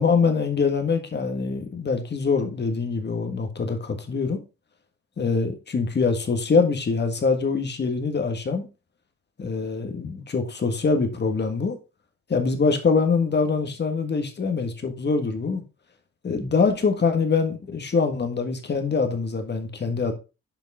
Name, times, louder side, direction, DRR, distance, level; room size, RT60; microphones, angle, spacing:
voice 1, 0.0-4.4 5.2-8.7 9.4-11.8 12.3-15.6 16.2-20.1, left 4 dB, 35° left, 1.6 m, -24 dB
7.0 x 5.2 x 3.6 m
cardioid pair, 90°, 30 cm